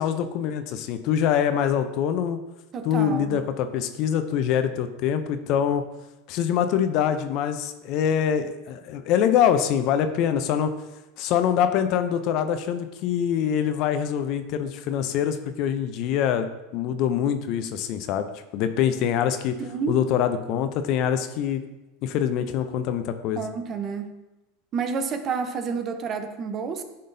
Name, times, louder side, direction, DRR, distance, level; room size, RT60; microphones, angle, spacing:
voice 1, 0.0-2.4 2.8-5.8 6.3-10.7 11.2-16.5 16.7-19.6 19.9-21.6 22.0-23.4, left 9 dB, 55° left, 9 dB, 0.5 m, -24 dB
voice 2, 2.7-3.4 19.6-20.0 23.3-24.1 24.7-26.8, right 5 dB, 35° right, 8 dB, 0.7 m, -29 dB
10.5 x 3.8 x 2.7 m, 1.0 s
hypercardioid pair, 105°, 0 cm